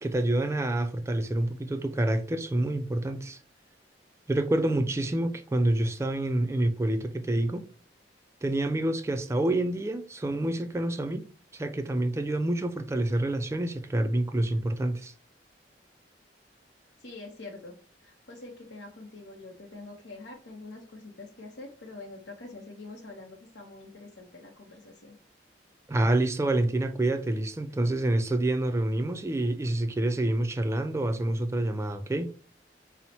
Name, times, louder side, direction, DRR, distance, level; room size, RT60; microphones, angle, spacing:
voice 1, 0.0-3.4 4.3-7.6 8.4-11.2 11.5-15.1 25.9-32.3, right 1 dB, 15° right, 0.3 m, -27 dB
voice 2, 17.0-17.7 18.0-25.2, left 2 dB, 75° left, 0.7 m, -45 dB
4.2 x 2.0 x 4.1 m
head